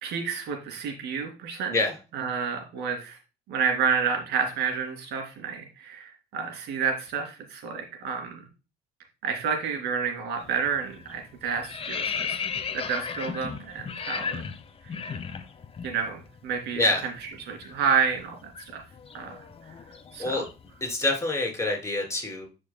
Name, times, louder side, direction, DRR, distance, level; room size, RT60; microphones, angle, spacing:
voice 1, 0.0-1.7 2.1-3.2 3.5-8.4 9.2-12.4 12.7-14.4 15.8-16.8 17.5-18.8 19.1-19.3 20.1-20.4, right 6 dB, 80° right, 2 dB, 2.6 m, -29 dB
sound 1, 10.4-10.7 11.0-15.9 16.2-16.4 16.7-20.8, left 6 dB, 35° left, 0.9 m, -35 dB
voice 2, 16.7-17.1 20.2-20.4 20.8-22.5, left 2 dB, 15° left, 1 dB, 3.3 m, -26 dB
13.0 x 5.3 x 2.2 m, 0.31 s
cardioid pair, 110°, 17 cm